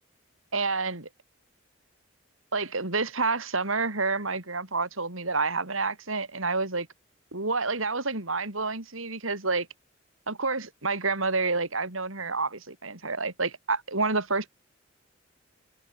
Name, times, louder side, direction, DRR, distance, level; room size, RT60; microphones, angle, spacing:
voice 1, 0.5-1.1 2.5-6.9 7.3-9.7 10.3-14.5, right 3 dB, 85° right, 5.2 m, -29 dB
open air
head